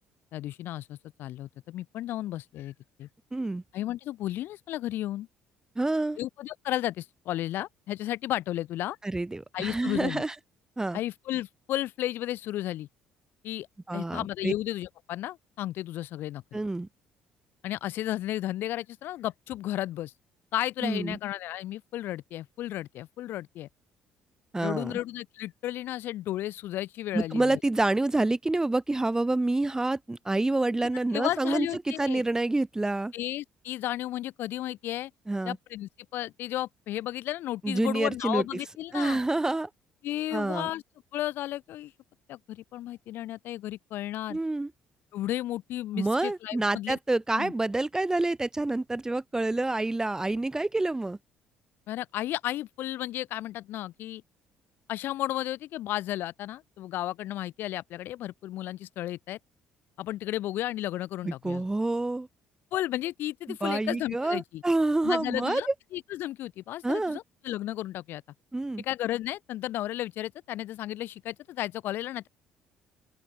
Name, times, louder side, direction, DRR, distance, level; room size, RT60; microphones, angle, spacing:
voice 1, 0.3-2.7 3.0-3.1 3.7-5.3 6.2-9.0 9.5-10.2 10.9-12.9 13.4-13.7 13.9-16.6 17.6-20.1 20.5-23.7 24.6-27.6 31.1-32.2 33.1-35.1 35.4-39.2 40.0-40.8 41.1-41.9 42.3-44.4 45.1-47.0 47.3-47.5 51.9-54.2 54.9-59.4 60.0-61.6 62.7-64.6 65.0-68.2 68.8-72.3, left 14 dB, 65° left, 2.7 m, -33 dB
voice 2, 3.3-3.6 5.8-6.2 9.0-10.3 10.8-11.0 13.9-14.5 16.5-16.9 20.8-21.2 24.5-24.9 27.1-33.1 35.3-35.6 37.6-38.4 38.9-39.7 40.3-40.7 44.3-44.7 46.0-51.2 61.2-62.3 63.5-65.7 66.8-67.2 68.5-68.8, right 2 dB, 15° right, 2.4 m, -28 dB
open air
hypercardioid pair, 50°, 4 cm